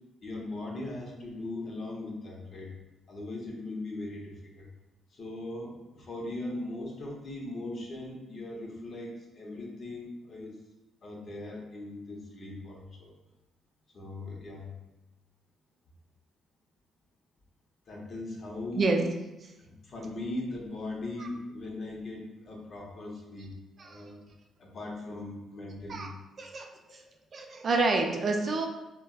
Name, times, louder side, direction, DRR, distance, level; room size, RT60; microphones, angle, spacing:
voice 1, 0.2-2.7 3.1-4.7 5.1-10.6 11.0-13.1 13.9-14.7 17.9-18.9 19.6-23.5 23.8-24.3 24.6-26.1, left 2 dB, 50° left, -2 dB, 0.7 m, -39 dB
voice 2, 26.4-27.0 27.3-28.7, right 3 dB, 45° right, 2 dB, 0.4 m, -29 dB
3.2 x 2.1 x 2.3 m, 1.0 s
cardioid pair, 90°, 0 cm